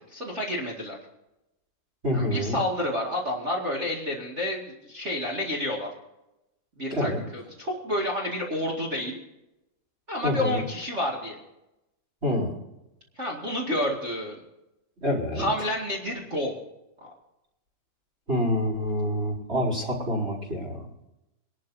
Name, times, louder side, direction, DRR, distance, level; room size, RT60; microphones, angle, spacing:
voice 1, 0.1-1.0 2.1-5.9 6.8-9.2 10.1-11.4 13.2-14.4 15.3-16.6 17.0-17.1, left 1 dB, 55° right, -3 dB, 0.7 m, -29 dB
voice 2, 2.0-2.6 6.9-7.2 10.2-10.6 12.2-12.5 15.0-15.5 18.3-20.9, equal, 15° right, -5 dB, 3.9 m, -27 dB
25.0 x 11.5 x 2.7 m, 0.93 s
omnidirectional pair, 5.1 m